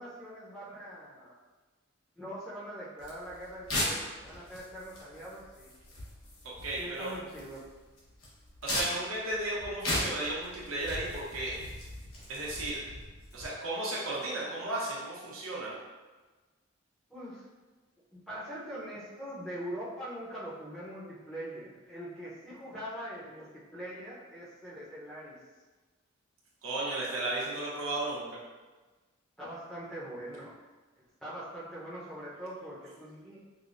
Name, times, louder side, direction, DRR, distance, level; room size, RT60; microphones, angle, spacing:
voice 1, 0.0-1.3 2.2-5.7 6.8-7.6 17.1-17.4 18.1-25.4 29.4-30.6 31.2-33.5, equal, ahead, -9 dB, 0.7 m, -42 dB
sound 1, 3.0-13.5, left 1 dB, 85° left, 1.0 m, -38 dB
voice 2, 6.6-7.1 8.6-11.5 12.3-12.8 13.3-15.8 26.6-28.3, right 2 dB, 90° right, -6 dB, 1.0 m, -34 dB
4.9 x 2.2 x 2.5 m, 1.3 s
head